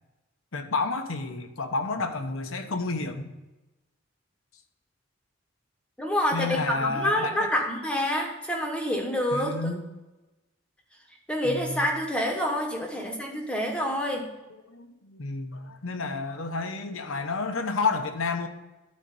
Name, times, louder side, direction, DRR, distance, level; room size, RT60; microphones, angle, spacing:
voice 1, 0.5-3.3 6.3-7.5 9.3-9.8 11.4-11.9 12.9-13.2 14.7-18.5, left 3 dB, 90° left, 6 dB, 1.0 m, -30 dB
voice 2, 6.0-9.7 11.3-14.3, left 1 dB, 5° left, 1 dB, 1.1 m, -27 dB
11.5 x 4.4 x 5.4 m, 1.1 s
head